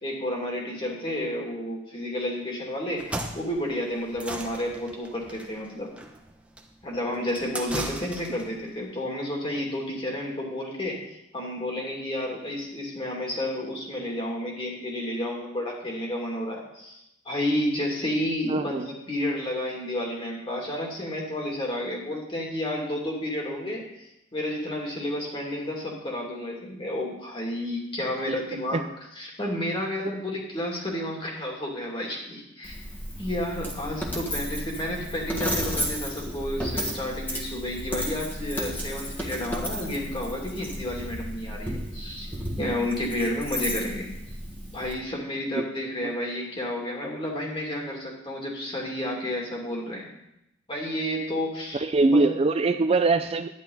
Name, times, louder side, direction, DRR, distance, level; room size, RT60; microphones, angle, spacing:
voice 1, 0.0-3.1 3.3-5.9 6.8-11.0 11.3-28.8 29.1-32.8 33.2-42.3 42.6-44.1 44.7-50.0 50.7-52.3, left 1 dB, 30° left, -1 dB, 2.8 m, -31 dB
sound 1, 2.9-8.6, right 1 dB, 5° right, 0.9 m, -37 dB
voice 2, 18.5-18.9 28.3-28.4 28.7-28.8 42.6-42.7 45.5-45.7 51.7-53.5, right 3 dB, 30° right, 9 dB, 0.4 m, -23 dB
Coin (dropping), 32.6-44.9, equal, 10° left, 1.7 m, -33 dB
11.5 x 10.5 x 4.1 m, 0.84 s
head